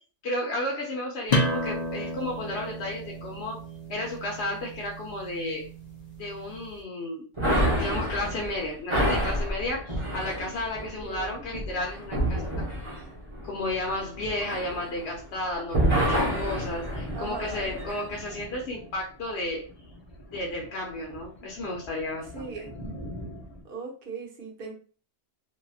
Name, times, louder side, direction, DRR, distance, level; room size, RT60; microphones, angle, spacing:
voice 1, 0.2-3.6 3.9-5.6 6.2-7.2 7.8-12.5 13.4-19.6 20.3-22.5, left 1 dB, 65° left, -1 dB, 0.9 m, -33 dB
sound 1, 1.3-6.7, left 1 dB, 45° left, 0.6 m, -32 dB
sound 2, 7.4-15.4 15.7-18.0, equal, 25° right, 0.9 m, -28 dB
voice 2, 10.8-11.4 17.1-17.7 22.3-22.7 23.6-24.7, right 4 dB, 55° right, 1 dB, 0.9 m, -39 dB
Thunder, 16.4-23.6, equal, 25° left, 0.9 m, -43 dB
3.0 x 2.6 x 2.3 m, 0.39 s
omnidirectional pair, 1.3 m